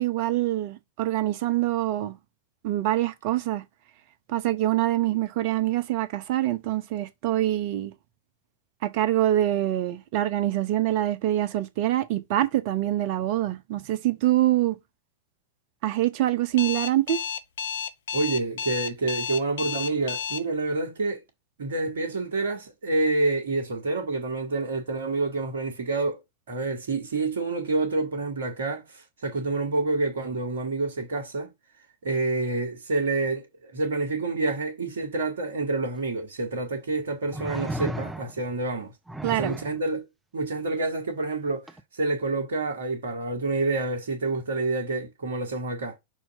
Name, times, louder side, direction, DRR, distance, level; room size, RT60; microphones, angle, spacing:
voice 1, 0.0-2.1 2.6-3.6 4.3-7.9 8.8-14.8 15.8-17.2 39.2-39.6, right 14 dB, 45° right, 0.8 m, -25 dB
Alarm, 16.6-20.4, left 8 dB, 60° left, 0.7 m, -31 dB
voice 2, 18.1-21.2 21.6-26.2 26.5-31.5 32.0-38.9 39.3-40.1 40.3-41.7 41.9-46.0, right 3 dB, 65° right, 1.5 m, -28 dB
sound 1, 35.9-36.0 37.3-38.5 39.1-39.8 41.7-41.8, right 1 dB, 5° right, 0.6 m, -34 dB
6.1 x 2.8 x 5.3 m
figure-of-eight pair, 90°, 0 cm